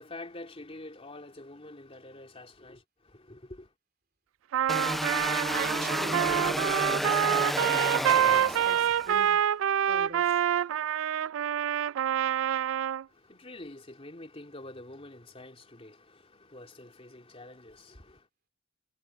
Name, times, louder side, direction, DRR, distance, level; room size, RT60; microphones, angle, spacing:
voice 1, 0.0-3.7 13.1-18.3, left 2 dB, 30° left, 2.9 m, -47 dB
Trumpet, 4.5-13.0, right 9 dB, 85° right, 0.3 m, -26 dB
sound 1, 4.7-9.2, equal, ahead, 0.5 m, -31 dB
voice 2, 5.5-9.4 9.9-10.4, right 3 dB, 50° right, 2.9 m, -42 dB
head